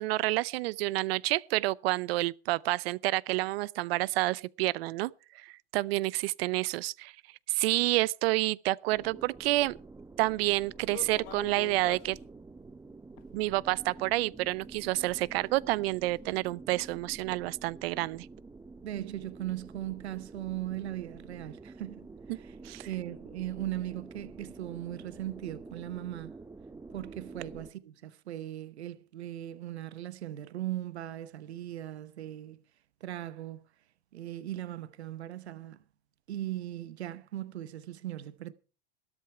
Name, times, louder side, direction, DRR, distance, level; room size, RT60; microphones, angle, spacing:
voice 1, 0.0-7.1 7.5-9.8 10.2-12.2 13.3-18.3 22.3-22.4 22.6-22.9, right 19 dB, 70° right, 0.6 m, -29 dB
sound 1, 8.9-27.7, right 3 dB, 10° right, 0.6 m, -49 dB
sound 2, 10.8-12.2 13.2-13.3 14.0-14.1 14.5-14.6 15.2-15.3 15.9-16.0 16.3-16.4, left 16 dB, 75° left, 0.6 m, -44 dB
voice 2, 18.8-22.6 22.8-26.3 26.9-32.6 33.0-33.6 34.1-35.8 36.3-38.5, right 13 dB, 90° right, 0.9 m, -38 dB
14.0 x 13.0 x 4.5 m
hypercardioid pair, 105°, 32 cm